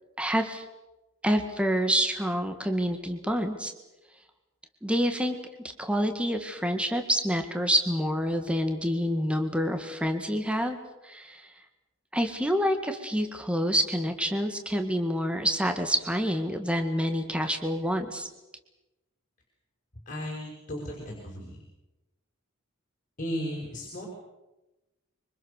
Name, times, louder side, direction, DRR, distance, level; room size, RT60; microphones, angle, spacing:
voice 1, 0.2-0.6 1.2-3.7 4.8-5.4 5.8-10.8 11.0-11.4 12.1-18.3, equal, 5° right, 6 dB, 1.8 m, -27 dB
voice 2, 20.1-21.6 23.2-24.1, equal, 40° left, -2 dB, 5.7 m, -35 dB
25.5 x 25.0 x 6.6 m, 1.0 s
head